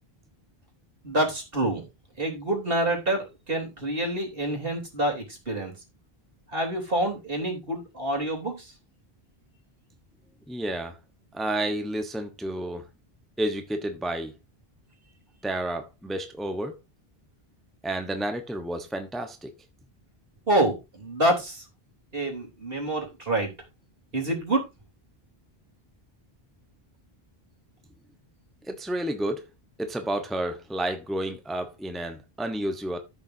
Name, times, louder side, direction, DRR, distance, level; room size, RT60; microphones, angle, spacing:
voice 1, 1.0-1.8 2.2-5.7 6.5-8.7 20.5-21.6 22.1-23.5 24.1-24.7, right 1 dB, 65° right, 3.8 m, -27 dB
voice 2, 10.5-10.9 11.3-12.8 13.4-14.3 15.4-16.8 17.8-19.5 28.7-29.4 29.8-33.0, right 1 dB, ahead, 1.0 m, -30 dB
13.5 x 7.2 x 2.7 m
omnidirectional pair, 1.0 m